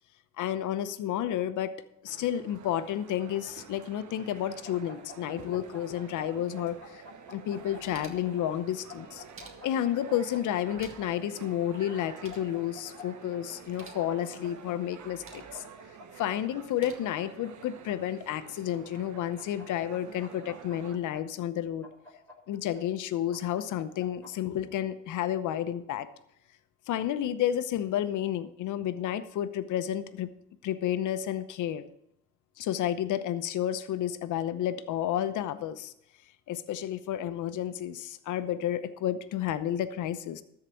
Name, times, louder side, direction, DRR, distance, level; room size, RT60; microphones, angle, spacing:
voice 1, 0.4-1.7 2.0-7.0 7.3-9.2 9.6-15.6 16.2-21.9 22.5-26.1 26.9-30.3 30.6-31.8 32.6-35.9 36.5-40.4, left 11 dB, 80° left, 12 dB, 0.8 m, -31 dB
sound 1, 2.1-21.0, right 7 dB, 75° right, 1.2 m, -49 dB
sound 2, 4.6-6.3 6.6-8.4 8.9-11.1 11.9-13.0 13.3-13.4 13.8-14.7 15.3-16.4 17.0-17.9 18.7-19.6 19.9-21.2 21.8-22.8 23.3-24.3, left 3 dB, 5° left, 5.6 m, -49 dB
sound 3, 7.5-8.4 9.1-9.9 10.6-11.2 11.5-11.6 11.9-12.5 13.6-14.0 14.9-15.6 16.5-16.9, right 3 dB, 45° right, 2.0 m, -52 dB
13.0 x 4.9 x 7.7 m, 0.79 s
cardioid pair, 90°, 30 cm